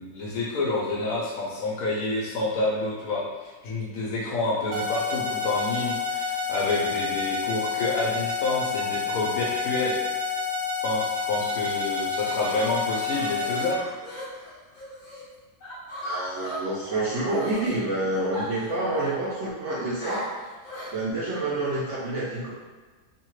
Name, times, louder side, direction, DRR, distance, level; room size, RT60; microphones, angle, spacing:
voice 1, 0.0-9.9 10.8-13.8, left 2 dB, 65° left, -4 dB, 0.9 m, -28 dB
sound 1, 4.7-13.7, left 5 dB, 80° right, 1.1 m, -29 dB
sound 2, 12.0-15.2 15.6-17.7 18.3-19.3 20.0-21.0, equal, 40° left, 0.7 m, -38 dB
voice 2, 16.0-20.3 20.9-22.5, right 2 dB, 60° right, -8 dB, 0.8 m, -28 dB
2.7 x 2.3 x 3.0 m, 1.4 s
omnidirectional pair, 1.7 m